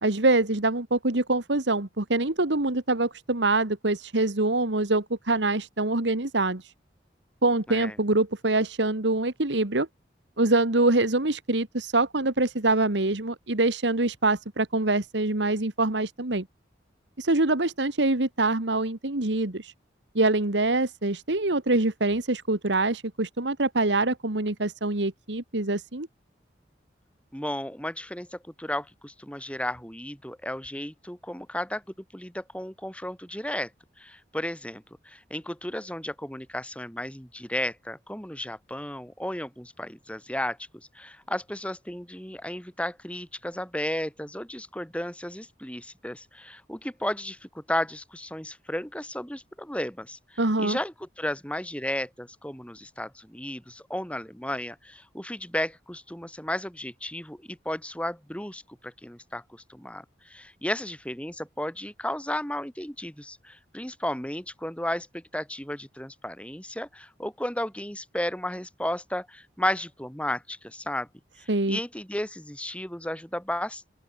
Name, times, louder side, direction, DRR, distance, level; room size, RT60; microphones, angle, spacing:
voice 1, 0.0-6.6 7.4-9.9 10.4-16.5 17.2-19.7 20.1-26.1 50.4-50.8 71.5-71.8, right 2 dB, 90° right, 1.9 m, -25 dB
voice 2, 27.3-31.8 32.1-33.7 34.0-71.1 71.4-73.9, left 1 dB, 5° left, 7.4 m, -34 dB
open air
head